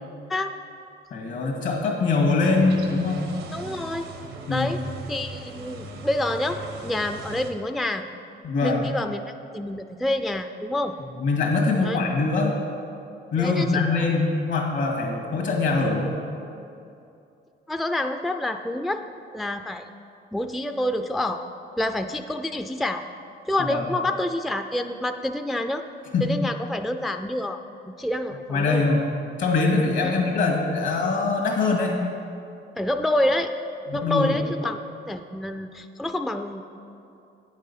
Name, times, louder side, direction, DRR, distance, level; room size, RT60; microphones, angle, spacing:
voice 1, 1.1-3.3 4.5-4.7 8.4-8.8 11.2-12.5 13.3-16.2 23.7-23.9 26.1-26.3 28.5-29.0 29.4-31.9 33.9-34.4, left 3 dB, 70° left, 0 dB, 2.0 m, -23 dB
sound 1, 2.4-7.5, right 3 dB, 90° right, 1.0 m, -39 dB
voice 2, 3.5-4.1 4.5-4.8 5.1-8.0 8.6-9.2 9.5-11.0 11.8-12.0 13.4-14.0 17.7-19.0 19.3-19.9 20.3-21.5 21.8-23.0 23.5-25.8 26.2-27.6 28.0-28.9 30.0-30.1 32.8-33.5 33.9-34.8 35.1-36.6, left 1 dB, ahead, 7 dB, 0.3 m, -27 dB
9.1 x 6.5 x 5.6 m, 2.7 s
cardioid pair, 90°, 20 cm